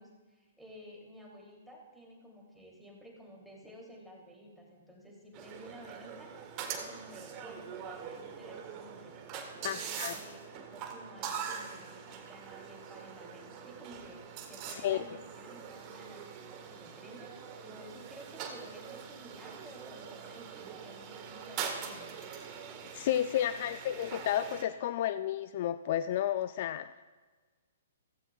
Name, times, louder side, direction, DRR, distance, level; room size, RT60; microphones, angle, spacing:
voice 1, 0.0-6.3 6.7-9.2 9.6-14.2 14.4-22.2 23.5-23.7, equal, ahead, -3 dB, 2.9 m, -52 dB
sound 1, 5.3-24.6, right 7 dB, 30° right, 1.5 m, -43 dB
voice 2, 9.6-10.1 14.8-15.0 22.9-26.9, left 11 dB, 45° left, 12 dB, 0.4 m, -31 dB
16.0 x 15.5 x 2.4 m, 1.4 s
figure-of-eight pair, 120°, 0 cm